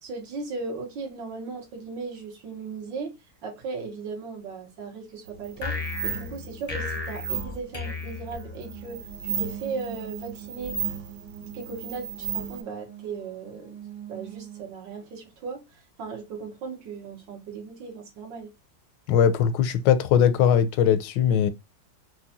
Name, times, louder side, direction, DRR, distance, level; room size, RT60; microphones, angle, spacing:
voice 1, 0.0-10.8 11.5-13.7 14.1-18.5, right 4 dB, 80° right, 1.9 m, -37 dB
sound 1, 5.3-12.6, right 8 dB, 65° right, 0.8 m, -35 dB
sound 2, 5.6-9.0, left 4 dB, 40° left, 0.5 m, -34 dB
sound 3, 8.6-14.6, right 9 dB, 30° right, 0.9 m, -44 dB
voice 2, 19.1-21.5, left 8 dB, 85° left, 1.3 m, -20 dB
4.6 x 2.2 x 2.7 m
omnidirectional pair, 2.0 m